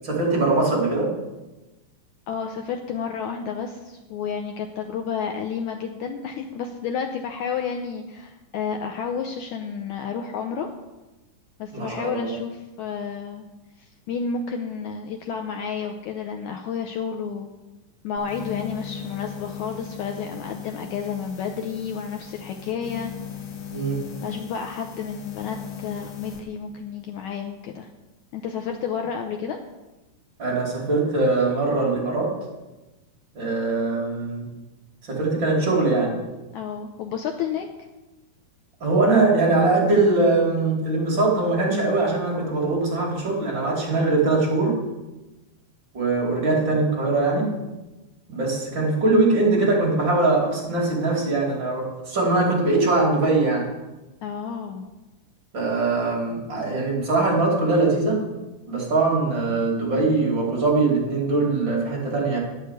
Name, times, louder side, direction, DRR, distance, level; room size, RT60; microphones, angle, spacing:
voice 1, 0.0-1.1 11.7-12.3 23.7-24.0 30.4-32.4 33.3-34.4 35.0-36.2 38.8-44.8 45.9-47.5 48.3-53.7 55.5-58.2 58.7-62.4, right 3 dB, 35° right, -3 dB, 2.8 m, -22 dB
voice 2, 2.3-10.7 11.6-13.4 13.8-17.5 18.0-23.1 24.2-27.9 28.3-29.6 36.5-37.7 54.2-54.9, left 6 dB, 80° left, 4 dB, 1.7 m, -31 dB
sound 1, 18.2-26.4, left 8 dB, 60° left, 2.1 m, -38 dB
10.5 x 6.5 x 8.0 m, 1.1 s
omnidirectional pair, 4.0 m